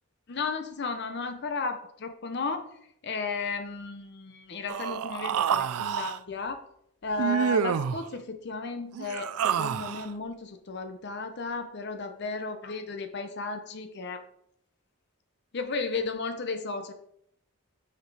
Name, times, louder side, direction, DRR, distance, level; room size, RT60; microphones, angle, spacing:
voice 1, 0.3-2.7 3.0-6.6 7.0-14.2 15.5-16.9, left 4 dB, 50° left, 8 dB, 0.6 m, -34 dB
Human voice, 4.7-6.2 7.2-8.0 8.9-10.1, right 8 dB, 85° right, 0.4 m, -28 dB
5.8 x 5.5 x 4.7 m, 0.71 s
head